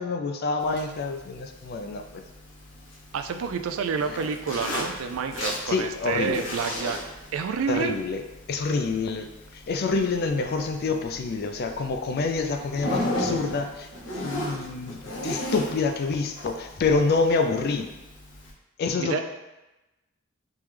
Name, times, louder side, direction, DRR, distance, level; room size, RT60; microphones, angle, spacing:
voice 1, 0.0-2.2 4.1-4.2 5.7-6.4 7.7-8.2 8.5-13.9 14.2-17.9 18.8-19.2, left 4 dB, 50° left, 6 dB, 0.4 m, -27 dB
Zipper (clothing), 0.6-18.5, left 1 dB, 65° left, 0.8 m, -36 dB
voice 2, 3.1-7.0 7.3-8.0 19.0-19.2, right 6 dB, 80° right, 7 dB, 0.3 m, -29 dB
3.5 x 3.1 x 3.3 m, 1.0 s
head